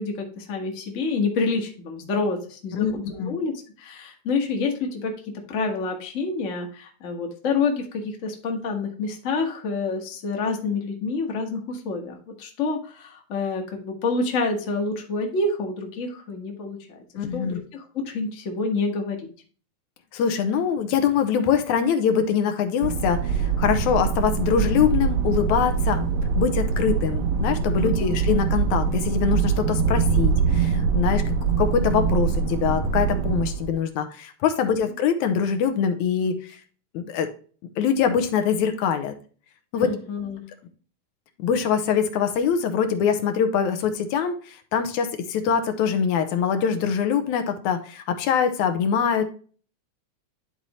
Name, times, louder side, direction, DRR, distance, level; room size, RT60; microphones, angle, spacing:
voice 1, 0.0-5.1 5.5-17.0 17.3-19.3 27.8-28.1 34.6-34.9 39.7-40.4, left 3 dB, 40° left, 2 dB, 1.1 m, -28 dB
voice 2, 2.7-3.4 17.2-17.6 20.1-26.1 26.4-31.2 31.6-36.6 36.9-37.3 37.8-39.1 39.7-40.0 41.4-49.2, left 7 dB, 80° left, 8 dB, 2.2 m, -23 dB
sound 1, 22.8-33.7, right 5 dB, 75° right, 2.0 m, -23 dB
11.0 x 4.2 x 3.0 m, 0.41 s
omnidirectional pair, 3.4 m